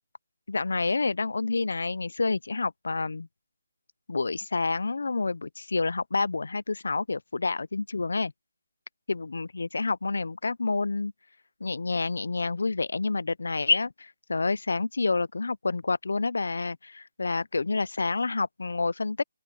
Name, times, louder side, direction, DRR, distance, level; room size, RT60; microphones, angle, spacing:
voice 1, 0.5-3.3 4.1-8.3 9.1-11.1 11.6-19.2, left 3 dB, 80° left, 0.5 m, -28 dB
open air
hypercardioid pair, 170°, 0 cm